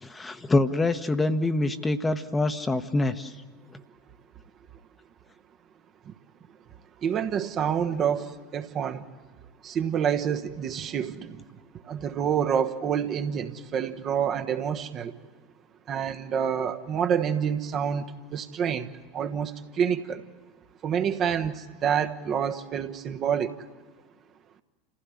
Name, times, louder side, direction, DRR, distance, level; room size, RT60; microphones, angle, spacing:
voice 1, 0.0-3.3 3.7-3.8, left 2 dB, 15° left, 9 dB, 1.1 m, -25 dB
voice 2, 7.0-9.0 9.6-11.4 11.9-15.1 15.9-18.1 18.3-18.9 19.1-20.2 20.8-23.5, right 8 dB, 35° right, 6 dB, 1.2 m, -27 dB
28.5 x 16.0 x 9.8 m, 1.4 s
figure-of-eight pair, 80°, 0 cm